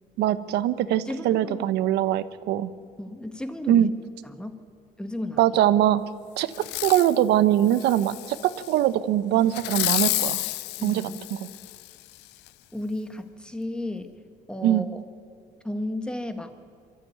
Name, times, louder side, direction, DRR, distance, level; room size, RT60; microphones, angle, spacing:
voice 1, 0.2-2.7 3.7-3.9 5.4-6.0 6.4-6.5 6.8-10.4 10.8-11.0 11.3-11.5 14.6-14.9, right 12 dB, 80° right, 15 dB, 1.0 m, -22 dB
voice 2, 1.0-1.7 3.0-3.9 4.2-4.6 5.0-5.6 10.8-11.3 12.7-14.2 14.5-15.0 15.6-16.5, left 1 dB, 5° left, 8 dB, 1.6 m, -34 dB
Fireworks, 6.5-7.2 7.7-8.7 9.5-11.9 12.5-12.6, left 19 dB, 85° left, 0.5 m, -30 dB
24.0 x 13.5 x 9.4 m, 2.2 s
cardioid pair, 110°, 17 cm